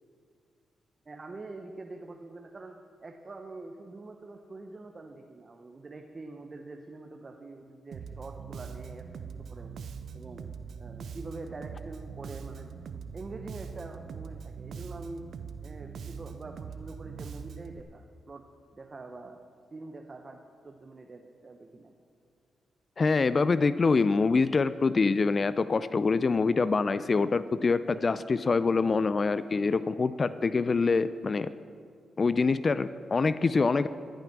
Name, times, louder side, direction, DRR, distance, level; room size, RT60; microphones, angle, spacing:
voice 1, 1.0-9.7 10.1-10.5 10.8-15.3 15.6-19.4 19.7-22.0, right 3 dB, 40° right, 4 dB, 1.0 m, -45 dB
Bass guitar, 7.9-17.8, right 6 dB, 70° right, 0.6 m, -42 dB
voice 2, 23.0-31.5 32.2-33.9, left 4 dB, 45° left, 14 dB, 0.4 m, -25 dB
14.0 x 9.2 x 6.0 m, 2.3 s
hypercardioid pair, 45°, 0 cm